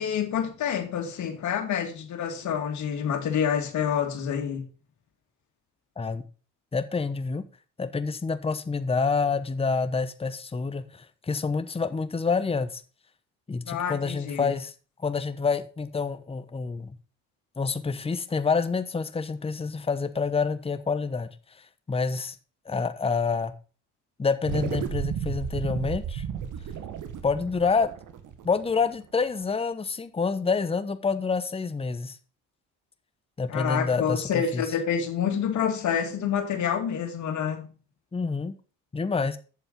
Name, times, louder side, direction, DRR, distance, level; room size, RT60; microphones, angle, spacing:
voice 1, 0.0-4.6 13.7-14.5 33.5-37.7, left 8 dB, 60° left, 2.5 m, -28 dB
voice 2, 6.7-7.4 7.8-12.8 13.5-14.7 15.0-16.9 17.6-21.3 21.9-22.3 22.6-23.5 24.2-26.3 27.2-27.9 28.4-32.2 33.4-34.6 38.1-38.5 38.9-39.4, left 4 dB, 20° left, 0.9 m, -27 dB
sound 1, 24.4-29.1, right 8 dB, 65° right, 1.5 m, -33 dB
8.3 x 7.0 x 5.3 m
supercardioid pair, 80°, 33 cm